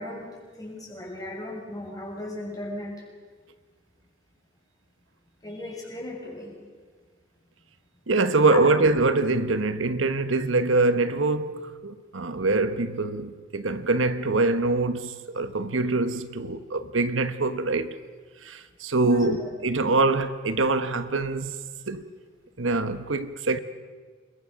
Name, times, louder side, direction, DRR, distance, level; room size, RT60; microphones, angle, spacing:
voice 1, 0.0-2.9 5.4-6.6 8.5-8.6 19.0-19.3 19.8-19.9, left 1 dB, 20° left, 6.8 m, -36 dB
voice 2, 8.1-17.9 18.4-19.4 19.6-21.6 21.9-22.0 22.6-23.6, right 3 dB, 85° right, 1.3 m, -24 dB
28.0 x 22.0 x 6.5 m
head